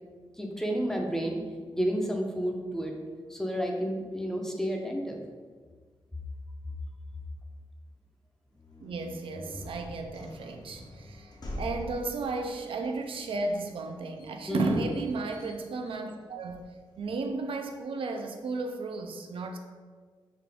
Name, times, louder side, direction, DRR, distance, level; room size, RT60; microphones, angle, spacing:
voice 1, 0.4-1.4 1.7-2.9 3.3-5.2 14.5-14.8, equal, 5° left, 1 dB, 0.5 m, -30 dB
sound 1, 8.5-17.2, left 1 dB, 45° left, 0.7 m, -45 dB
voice 2, 8.8-16.7 17.0-19.6, right 3 dB, 70° right, 4 dB, 0.3 m, -34 dB
3.7 x 2.4 x 3.4 m, 1.5 s
cardioid pair, 85°, 9 cm